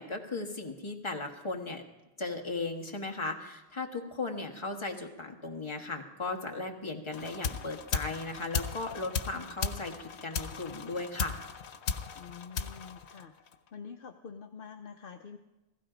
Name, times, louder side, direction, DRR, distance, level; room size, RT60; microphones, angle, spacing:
voice 1, 0.0-1.8 2.2-11.4, left 3 dB, 25° left, 3 dB, 1.5 m, -37 dB
sound 1, 7.1-13.7, left 5 dB, 90° left, 1.1 m, -36 dB
voice 2, 12.1-13.3 13.7-15.4, left 6 dB, 60° left, 5 dB, 0.9 m, -46 dB
16.0 x 15.5 x 5.1 m, 1.0 s
omnidirectional pair, 1.1 m